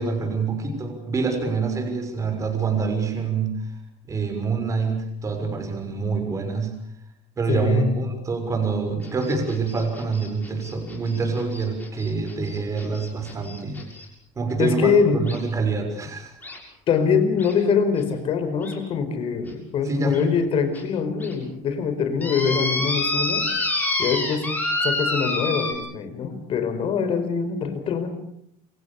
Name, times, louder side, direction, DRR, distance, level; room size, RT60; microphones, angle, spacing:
voice 1, 0.0-3.8 4.0-6.7 7.4-13.9 14.3-16.4 19.8-20.6, right 4 dB, 20° right, 5 dB, 6.4 m, -26 dB
voice 2, 7.5-7.9 14.6-15.3 16.9-23.5 24.0-24.5 24.8-28.1, left 6 dB, 40° left, 10 dB, 4.8 m, -23 dB
sound 1, 9.0-14.0 15.3-15.4 16.4-16.6 17.4-17.5 18.0-18.1 18.6-18.7 19.5-19.6 20.1-20.2 20.7-20.8 21.2-21.3 22.2-25.7, left 2 dB, 10° left, 6.9 m, -28 dB
28.0 x 25.5 x 7.2 m, 0.70 s
cardioid pair, 170°, 15 cm